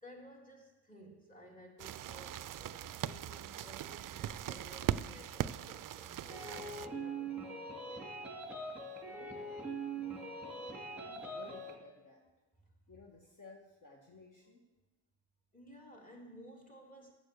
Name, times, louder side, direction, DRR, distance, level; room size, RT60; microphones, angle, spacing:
voice 1, 0.0-8.0 15.5-17.1, equal, 15° left, 0 dB, 2.9 m, -55 dB
sound 1, 1.8-6.9, right 11 dB, 45° right, 0.4 m, -40 dB
sound 2, 6.3-11.8, right 3 dB, 5° right, 2.3 m, -42 dB
voice 2, 9.1-9.6 10.4-12.2 12.9-14.6, left 3 dB, 40° left, 0 dB, 1.6 m, -56 dB
9.0 x 7.2 x 7.0 m, 1.1 s
cardioid pair, 75°, 48 cm